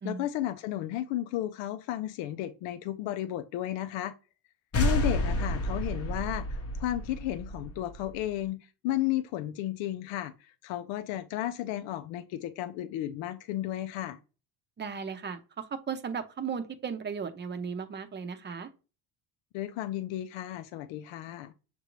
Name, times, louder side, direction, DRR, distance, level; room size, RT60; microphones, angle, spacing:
voice 1, 0.0-4.1 4.8-14.2 19.5-21.5, left 13 dB, 75° left, 0.6 m, -33 dB
sound 1, 4.7-8.2, left 1 dB, 30° left, 0.8 m, -30 dB
voice 2, 14.8-18.7, right 6 dB, 25° right, 0.7 m, -36 dB
6.6 x 2.6 x 3.0 m
supercardioid pair, 95°, 46 cm